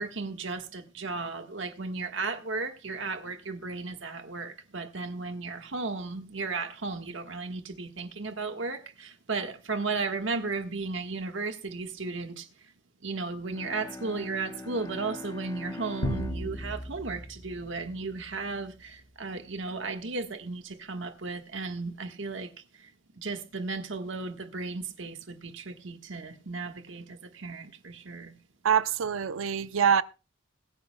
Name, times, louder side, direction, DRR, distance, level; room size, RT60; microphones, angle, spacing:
voice 1, 0.0-12.7 13.0-22.9 23.2-28.4, right 3 dB, 65° right, 1.4 m, -35 dB
Bowed string instrument, 13.4-18.3, left 2 dB, 15° left, 0.6 m, -44 dB
sound 1, 16.0-18.6, equal, 90° left, 3.1 m, -35 dB
voice 2, 28.6-30.0, right 7 dB, 85° right, 0.6 m, -24 dB
22.0 x 9.6 x 2.2 m
head